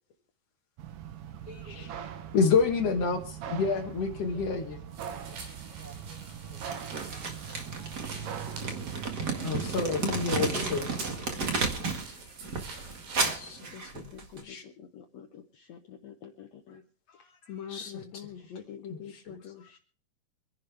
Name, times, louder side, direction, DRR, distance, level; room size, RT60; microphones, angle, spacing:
sound 1, 0.8-10.4, right 8 dB, 70° right, 2.6 m, -41 dB
voice 1, 1.4-2.1 2.5-3.0 3.6-3.8 4.3-4.8 5.1-5.4 5.7-6.6, equal, 5° right, -6 dB, 4.0 m, -54 dB
voice 2, 2.3-3.2 3.5-4.8 9.4-10.9 13.3-13.6 13.9-14.1 14.4-14.6 17.7-18.3 18.9-19.3, left 5 dB, 65° left, 5 dB, 1.6 m, -28 dB
sound 2, 4.9-13.4, right 4 dB, 90° right, 5.2 m, -46 dB
Crumpling crinkling, 6.7-12.1 12.4-14.4, right 4 dB, 40° right, 1.6 m, -33 dB
voice 3, 10.4-11.0 11.3-12.7 13.6-16.8 17.1-19.8, left 7 dB, 85° left, 5 dB, 1.5 m, -46 dB
26.0 x 11.0 x 3.4 m, 0.39 s
omnidirectional pair, 4.4 m